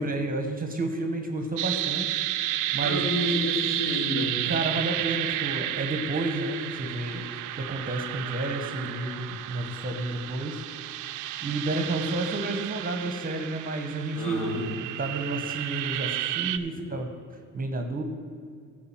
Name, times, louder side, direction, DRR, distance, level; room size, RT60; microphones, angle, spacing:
voice 1, 0.0-3.1 4.4-7.3 7.5-10.6 11.4-14.4 15.0-17.1 17.5-18.0, right 2 dB, 30° right, 5 dB, 1.2 m, -31 dB
sound 1, 1.6-16.6, right 14 dB, 85° right, 0.5 m, -32 dB
voice 2, 2.8-4.4 14.2-14.7, left 1 dB, 45° left, -1 dB, 2.9 m, -29 dB
11.5 x 4.9 x 7.4 m, 2.3 s
cardioid pair, 90°, 30 cm